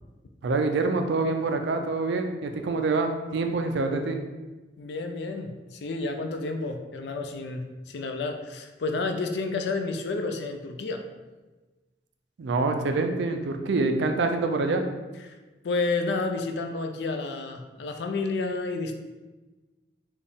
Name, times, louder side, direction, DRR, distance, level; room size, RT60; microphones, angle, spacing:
voice 1, 0.4-4.2 12.4-14.8, right 3 dB, 70° right, 5 dB, 0.4 m, -26 dB
voice 2, 4.8-11.0 15.2-15.4 15.6-18.9, left 3 dB, 65° left, 5 dB, 0.4 m, -30 dB
4.1 x 2.4 x 3.5 m, 1.2 s
head